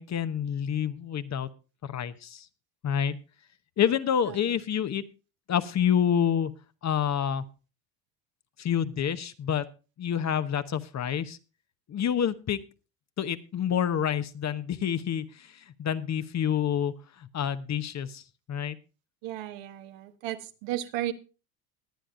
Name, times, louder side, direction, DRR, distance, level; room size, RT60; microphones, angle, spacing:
voice 1, 0.0-1.5 1.8-2.5 2.8-3.2 3.8-5.0 5.5-6.5 6.8-7.4 8.6-9.7 10.0-11.4 11.9-12.6 13.2-18.2 18.5-18.8, left 8 dB, 35° left, 11 dB, 0.9 m, -28 dB
voice 2, 19.2-21.1, right 14 dB, 65° right, 9 dB, 1.3 m, -34 dB
19.5 x 10.0 x 2.5 m, 0.32 s
hypercardioid pair, 80°, 48 cm